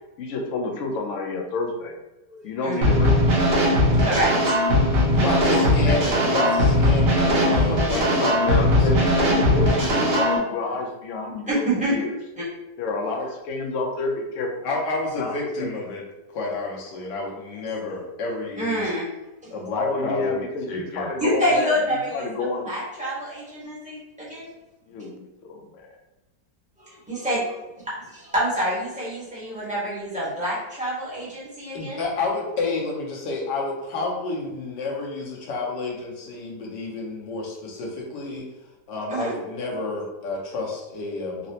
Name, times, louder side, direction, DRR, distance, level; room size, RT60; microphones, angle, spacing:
voice 1, 0.2-2.0 2.4-3.4 5.5-5.7 7.4-12.1 12.8-14.5 15.2-15.7 19.7-21.7 22.1-22.7 24.9-25.9, left 3 dB, 70° left, 2 dB, 0.7 m, -29 dB
voice 2, 2.3-2.8 3.7-4.7 5.1-5.2 11.5-12.0 12.4-12.5 18.6-19.0 19.4-19.6 21.2-22.3 22.6-24.4 25.0-25.1 26.8-32.0 39.1-39.4, equal, 5° right, -9 dB, 0.7 m, -27 dB
sound 1, 2.8-10.4, left 1 dB, 55° right, 0.7 m, -19 dB
voice 3, 5.2-9.3 10.7-10.8 14.6-16.0 16.3-18.8 19.5-20.4 20.7-21.2 31.7-38.4 38.9-41.5, left 3 dB, 85° left, -2 dB, 1.4 m, -30 dB
3.9 x 2.0 x 2.7 m, 1.0 s
omnidirectional pair, 1.8 m